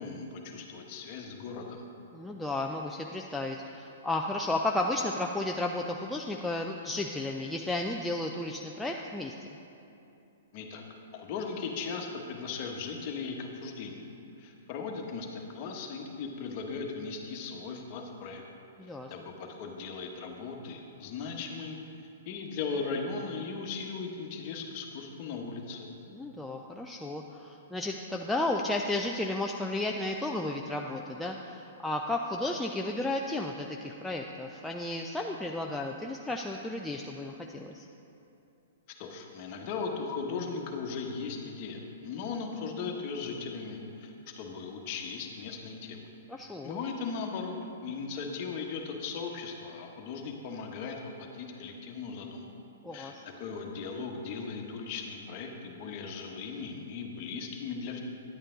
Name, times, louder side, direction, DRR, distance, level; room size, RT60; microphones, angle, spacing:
voice 1, 0.0-1.8 10.5-10.8 11.1-14.0 14.4-18.4 18.8-21.8 22.3-25.9 39.0-46.0 46.4-52.5 52.9-58.0, left 5 dB, 45° left, 2 dB, 1.2 m, -38 dB
voice 2, 2.1-9.3 18.8-19.1 26.1-37.9 46.3-46.8 52.8-53.2, left 2 dB, 5° left, 0 dB, 0.4 m, -33 dB
10.0 x 8.8 x 3.9 m, 2.7 s
hypercardioid pair, 120°, 0 cm